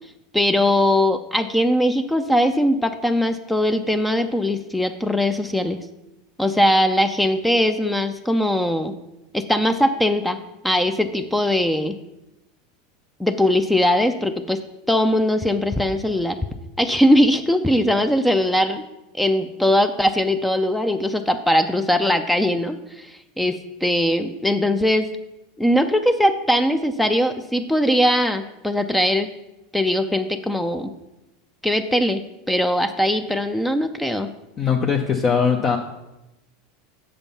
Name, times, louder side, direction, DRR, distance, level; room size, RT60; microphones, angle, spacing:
voice 1, 0.3-5.8 6.4-8.9 9.3-10.4 10.6-12.0 13.2-14.6 14.9-16.4 16.8-18.8 19.2-25.1 25.6-29.3 29.7-30.9 31.6-32.2 32.5-34.3, left 1 dB, 5° left, 9 dB, 0.5 m, -20 dB
voice 2, 34.6-35.8, left 6 dB, 35° left, 2 dB, 0.7 m, -20 dB
7.0 x 5.2 x 5.6 m, 0.95 s
hypercardioid pair, 95°, 0 cm